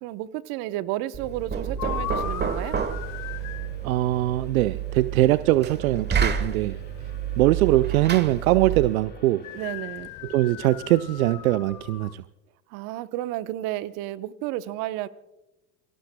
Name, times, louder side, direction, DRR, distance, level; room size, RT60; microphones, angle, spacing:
voice 1, 0.0-2.8 9.5-10.1 12.7-15.1, right 14 dB, 60° right, 13 dB, 1.0 m, -32 dB
Knock, 1.1-9.0, right 8 dB, 25° right, 1.3 m, -30 dB
sound 1, 1.8-3.8 9.4-12.1, left 13 dB, 50° left, 1.2 m, -37 dB
sound 2, 2.6-9.7, left 3 dB, 25° left, 2.6 m, -51 dB
voice 2, 3.8-6.8 7.4-9.4 10.3-12.2, right 16 dB, 80° right, 15 dB, 0.5 m, -22 dB
28.0 x 19.5 x 2.2 m, 0.99 s
hypercardioid pair, 85°, 42 cm